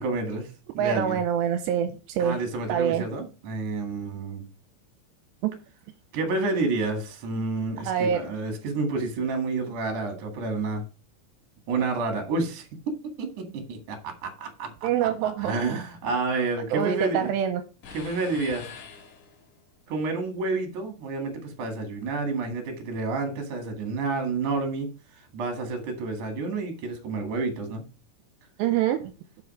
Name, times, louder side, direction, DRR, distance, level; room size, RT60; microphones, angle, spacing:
voice 1, 0.0-1.2 2.2-4.4 6.1-10.8 11.7-12.7 13.2-17.3 17.9-18.7 19.9-24.9 25.3-27.8, right 3 dB, 55° right, 4 dB, 2.9 m, -29 dB
voice 2, 0.8-2.4 2.7-3.0 5.4-5.5 7.9-8.2 14.8-15.5 16.7-17.6 28.6-29.0, right 9 dB, 85° right, 8 dB, 2.8 m, -25 dB
sound 1, 17.8-19.7, left 6 dB, 55° left, 3.0 m, -44 dB
7.4 x 6.3 x 4.7 m, 0.33 s
omnidirectional pair, 5.1 m